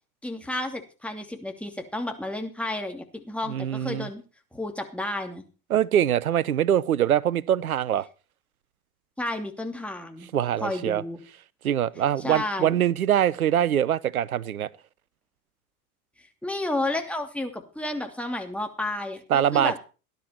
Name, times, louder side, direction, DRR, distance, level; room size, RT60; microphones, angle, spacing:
voice 1, 0.2-4.2 4.5-5.4 9.2-10.3 10.6-11.2 12.2-12.8 16.4-19.8, left 1 dB, 5° left, 2.7 m, -31 dB
voice 2, 3.5-4.1 5.7-8.1 10.3-11.0 11.6-14.7 19.3-19.8, right 10 dB, 75° right, 0.8 m, -23 dB
18.5 x 10.5 x 4.4 m
figure-of-eight pair, 80°, 44 cm